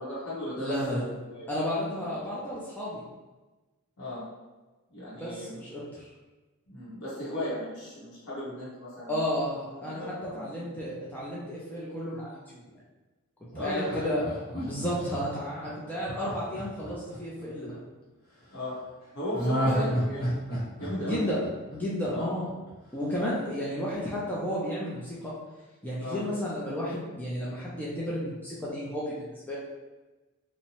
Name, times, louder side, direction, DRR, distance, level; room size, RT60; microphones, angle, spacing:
voice 1, 0.0-1.5 2.0-2.1 4.0-4.2 4.9-5.6 6.7-9.2 9.8-10.4 13.5-14.1 14.5-14.6 18.5-18.7 19.1-20.3 20.8-21.3 22.1-22.3 26.0-26.2, left 1 dB, 75° left, -9 dB, 0.9 m, -36 dB
voice 2, 0.6-1.0 1.5-3.0 5.2-6.1 9.1-12.6 13.6-14.2 14.6-17.8 19.6-19.9 20.9-21.4 21.7-22.5 22.9-25.4 25.8-29.6, equal, 10° left, -7 dB, 0.4 m, -32 dB
Laughter, 13.5-17.7 19.3-22.3 22.7-22.8, equal, 45° left, 0.9 m, -31 dB
2.6 x 2.0 x 2.9 m, 1.2 s
head